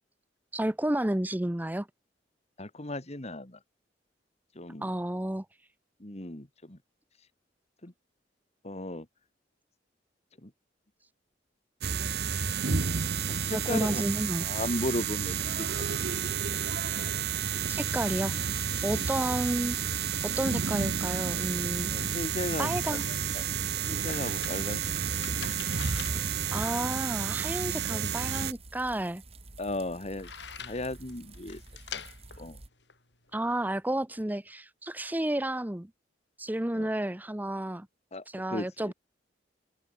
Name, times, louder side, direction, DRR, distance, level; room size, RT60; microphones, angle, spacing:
voice 1, 0.5-1.9 4.8-5.4 13.5-14.4 17.7-18.3 18.8-21.9 22.6-23.0 26.5-29.2 33.3-35.9 36.4-37.9 38.3-38.9, right 1 dB, 10° right, 0.8 m, -31 dB
voice 2, 2.6-3.6 4.6-4.9 6.0-6.8 7.8-7.9 8.6-9.1 10.4-10.5 13.3-14.1 14.4-16.0 16.4-16.6 18.9-19.1 21.9-23.5 23.8-25.1 25.3-25.6 27.9-28.1 29.6-30.3 30.6-31.6 31.9-32.0 32.4-32.6 36.7-36.9 38.1-38.9, left 1 dB, 35° left, 2.3 m, -36 dB
sound 1, 11.8-28.5, right 6 dB, 60° right, 1.2 m, -31 dB
sound 2, 20.8-32.7, right 2 dB, 35° right, 1.9 m, -50 dB
sound 3, 23.1-33.6, left 7 dB, 70° left, 6.5 m, -47 dB
head